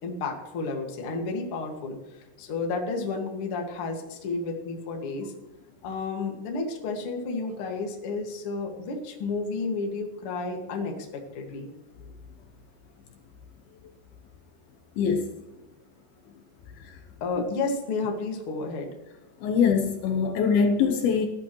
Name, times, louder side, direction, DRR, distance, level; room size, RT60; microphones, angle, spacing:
voice 1, 0.0-2.0 2.4-5.3 5.8-11.7 17.2-18.9, left 3 dB, 45° left, 2 dB, 2.1 m, -31 dB
voice 2, 15.0-15.3 19.4-21.3, left 6 dB, 70° left, 4 dB, 2.7 m, -23 dB
20.0 x 12.5 x 3.1 m, 1.0 s
omnidirectional pair, 4.8 m